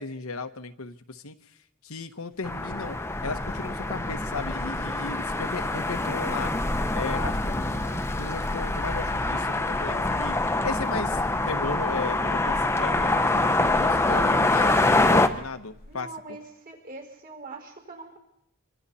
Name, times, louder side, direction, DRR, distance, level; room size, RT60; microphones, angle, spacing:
voice 1, 0.0-1.4 1.8-3.0 3.2-6.5 6.9-10.4 10.6-11.2 11.5-16.1, left 4 dB, 85° left, 9 dB, 1.2 m, -35 dB
sound 1, 2.4-15.3, left 2 dB, 10° left, 0.9 m, -25 dB
sound 2, 2.5-15.9, left 2 dB, 45° left, 1.0 m, -44 dB
voice 2, 15.9-18.2, right 3 dB, 40° right, 2 dB, 5.1 m, -42 dB
26.0 x 24.5 x 4.3 m, 0.77 s
head